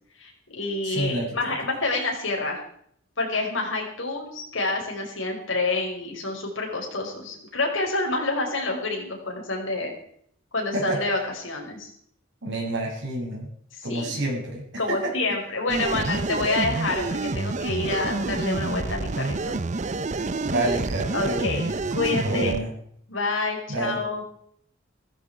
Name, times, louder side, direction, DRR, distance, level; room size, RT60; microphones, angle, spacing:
voice 1, 0.2-2.6 3.2-9.9 10.5-11.9 13.9-14.1 14.8-19.6 21.1-22.6 23.1-24.2, left 2 dB, 65° left, 0 dB, 5.3 m, -28 dB
voice 2, 0.8-1.5 10.7-11.0 12.4-13.5 13.8-15.1 20.4-22.7 23.7-24.0, right 1 dB, 60° right, -2 dB, 7.7 m, -29 dB
sound 1, 15.7-22.6, right 3 dB, 35° right, 0.6 m, -28 dB
16.0 x 14.5 x 4.9 m, 0.65 s
head